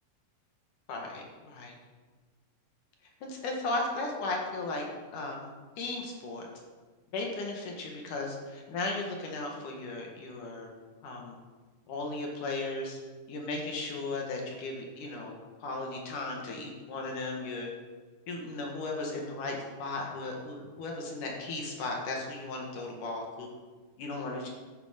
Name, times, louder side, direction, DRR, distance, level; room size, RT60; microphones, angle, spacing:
voice 1, 0.9-1.7 3.2-4.8 5.1-5.5 5.8-6.5 7.1-10.7 11.0-11.4 11.9-13.0 13.3-17.7 18.3-23.5 24.0-24.5, left 2 dB, 70° left, 0 dB, 3.0 m, -36 dB
12.0 x 9.4 x 5.1 m, 1.4 s
omnidirectional pair, 3.9 m